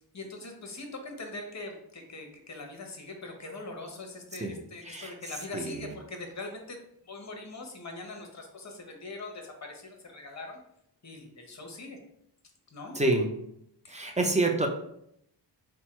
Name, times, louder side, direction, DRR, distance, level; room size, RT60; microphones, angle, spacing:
voice 1, 0.1-6.8 7.0-10.6 11.0-12.0 12.7-13.0 13.8-14.1, left 2 dB, 40° left, 3 dB, 0.9 m, -42 dB
voice 2, 12.9-13.3 13.9-14.7, right 2 dB, 15° right, 3 dB, 0.5 m, -27 dB
4.3 x 2.2 x 4.3 m, 0.75 s
wide cardioid pair, 120°, 43 cm